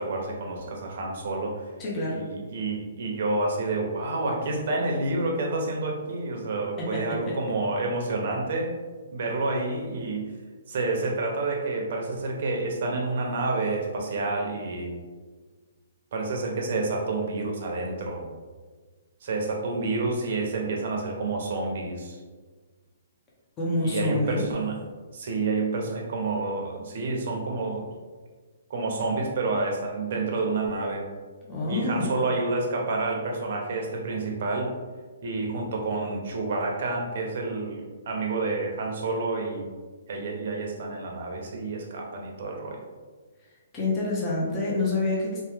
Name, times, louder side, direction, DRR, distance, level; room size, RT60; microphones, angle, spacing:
voice 1, 0.0-1.7 2.1-8.7 9.1-10.3 10.7-14.9 16.1-18.2 19.2-22.2 23.8-24.8 25.1-27.9 28.7-31.1 31.7-34.7 35.2-39.7 40.1-42.8, right 3 dB, 50° right, 0 dB, 0.6 m, -29 dB
voice 2, 1.8-2.2 6.8-7.3 23.6-24.4 31.5-32.1 43.7-45.4, left 2 dB, 15° left, -5 dB, 0.6 m, -27 dB
2.9 x 2.1 x 3.4 m, 1.4 s
hypercardioid pair, 165°, 0 cm